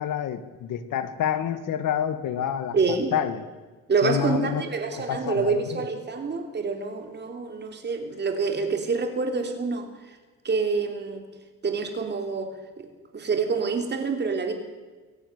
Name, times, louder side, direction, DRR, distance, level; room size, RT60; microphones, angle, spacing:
voice 1, 0.0-2.8 3.1-3.4 4.0-4.6 5.1-5.8, left 9 dB, 70° left, 11 dB, 2.0 m, -28 dB
voice 2, 2.7-3.1 3.9-9.9 10.4-11.2 11.6-12.9 13.1-14.5, right 4 dB, 30° right, 5 dB, 3.3 m, -27 dB
23.5 x 18.0 x 6.8 m, 1.3 s
cardioid pair, 150°, 33 cm